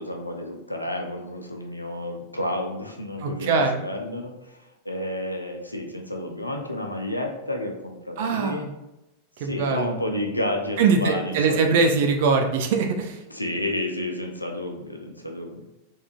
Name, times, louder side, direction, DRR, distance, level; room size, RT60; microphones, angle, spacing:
voice 1, 0.0-8.7 9.4-11.9 13.3-15.6, left 1 dB, 85° left, 2 dB, 0.4 m, -31 dB
voice 2, 3.2-3.8 8.2-8.7 9.4-10.0 10.8-13.2, right 4 dB, 50° right, 5 dB, 0.4 m, -22 dB
3.5 x 2.5 x 2.3 m, 0.93 s
figure-of-eight pair, 90°, 0 cm